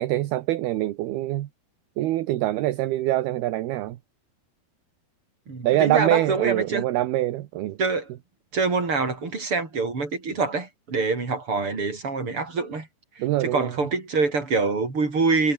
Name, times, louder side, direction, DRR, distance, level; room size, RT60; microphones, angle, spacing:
voice 1, 0.0-1.5 2.0-4.0 5.6-7.8 13.2-13.9, right 15 dB, 75° right, 3.0 m, -24 dB
voice 2, 5.5-6.9 7.8-8.1 8.5-12.9 13.2-15.5, right 4 dB, 30° right, 6.3 m, -25 dB
omnidirectional pair, 4.8 m